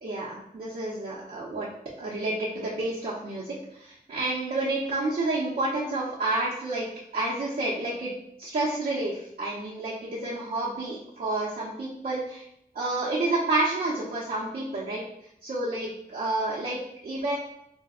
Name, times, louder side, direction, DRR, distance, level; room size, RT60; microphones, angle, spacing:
voice 1, 0.0-1.7 2.0-6.9 7.1-8.1 8.4-12.4 12.7-15.0 15.4-17.4, right 2 dB, 75° right, -8 dB, 0.6 m, -29 dB
4.3 x 2.0 x 2.3 m, 0.74 s
wide cardioid pair, 95°, 14 cm